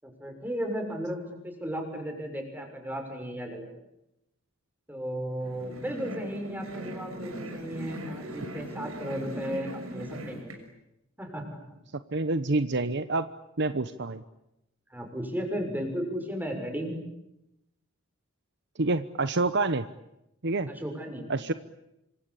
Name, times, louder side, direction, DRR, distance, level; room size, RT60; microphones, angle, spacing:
voice 1, 0.0-3.7 4.9-10.6 11.2-11.8 14.9-17.0 20.7-21.3, equal, 10° right, 3 dB, 6.9 m, -35 dB
sound 1, 5.4-10.6, right 1 dB, 90° right, 6.4 m, -39 dB
voice 2, 12.1-13.3 13.6-14.2 18.8-19.9 20.4-20.7 21.3-21.5, right 2 dB, 55° right, 11 dB, 1.0 m, -27 dB
27.5 x 25.5 x 8.4 m, 0.87 s
head